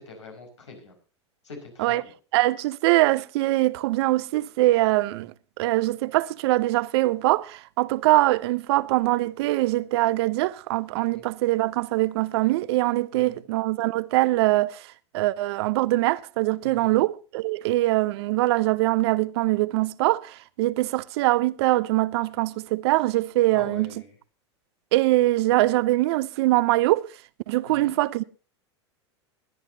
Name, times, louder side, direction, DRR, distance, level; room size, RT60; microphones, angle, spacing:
voice 1, 0.1-0.9 1.4-2.0 11.1-11.2 13.1-13.4 16.6-17.0 23.5-24.1 27.6-27.9, left 4 dB, 90° left, 5.3 m, -43 dB
voice 2, 2.3-14.8 15.1-23.9 24.9-27.1 27.5-28.2, right 18 dB, 65° right, 0.7 m, -23 dB
20.5 x 10.5 x 2.8 m
hypercardioid pair, 95°, 15 cm